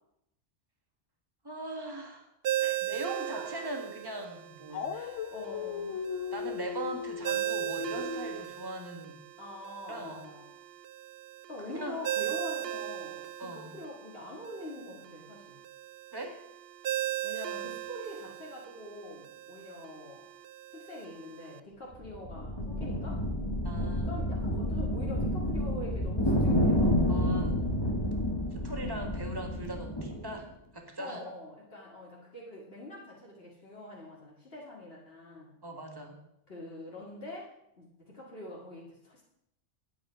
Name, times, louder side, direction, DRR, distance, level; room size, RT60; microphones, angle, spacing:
voice 1, 1.4-2.3 2.8-4.9 6.3-9.2 9.9-10.2 11.7-12.0 13.4-13.7 16.1-16.4 23.6-24.1 27.1-27.5 28.5-31.2 35.6-36.2, right 2 dB, 20° right, 2 dB, 1.7 m, -40 dB
Ringtone, 2.4-21.6, right 13 dB, 65° right, 0.7 m, -38 dB
Dog, 4.7-8.4, left 7 dB, 75° left, 1.0 m, -37 dB
voice 2, 4.9-6.0 9.4-10.5 11.5-15.6 17.2-20.2 20.7-23.2 24.1-27.1 31.0-35.5 36.5-37.5 37.8-39.2, left 1 dB, 50° left, -4 dB, 2.1 m, -44 dB
sound 1, 21.9-30.4, equal, 20° left, 1.4 m, -29 dB
10.5 x 8.5 x 5.0 m, 0.78 s
omnidirectional pair, 1.3 m